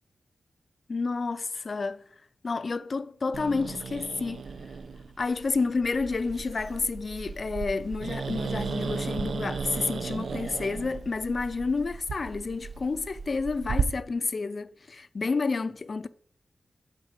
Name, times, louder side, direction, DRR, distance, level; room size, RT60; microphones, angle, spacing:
voice 1, 0.9-2.0 2.4-4.5 5.2-16.1, left 4 dB, 45° left, 0.3 m, -30 dB
Growling, 3.3-13.8, right 5 dB, 90° right, 0.4 m, -35 dB
7.8 x 4.1 x 6.5 m
wide cardioid pair, 150°, 0 cm